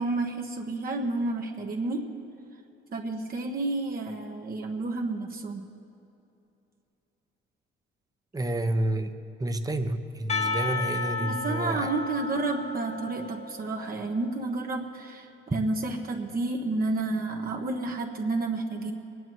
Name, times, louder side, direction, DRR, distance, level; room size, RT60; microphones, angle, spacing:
voice 1, 0.0-2.0 2.9-5.7 11.2-18.9, right 2 dB, 50° right, 1 dB, 1.4 m, -30 dB
voice 2, 8.3-11.9, right 1 dB, 20° right, 7 dB, 1.0 m, -30 dB
Percussion, 10.3-14.2, left 3 dB, 35° left, 1.2 m, -33 dB
23.0 x 10.0 x 4.7 m, 2.8 s
cardioid pair, 90°, 20 cm